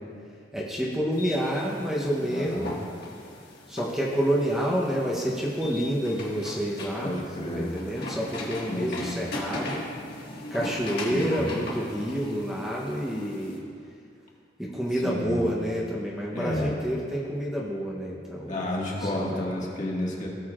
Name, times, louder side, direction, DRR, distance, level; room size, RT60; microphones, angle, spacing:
voice 1, 0.5-2.8 3.7-7.2 7.5-9.8 10.5-13.6 14.6-18.7 19.0-19.6, equal, 5° right, -5 dB, 0.9 m, -28 dB
sound 1, 1.1-13.6, left 2 dB, 60° left, 1.8 m, -39 dB
voice 2, 2.3-2.7 7.0-7.7 8.7-9.1 11.1-11.4 15.0-15.4 16.3-16.7 18.5-20.3, left 1 dB, 45° left, -4 dB, 1.8 m, -31 dB
17.5 x 6.7 x 2.5 m, 2.4 s
head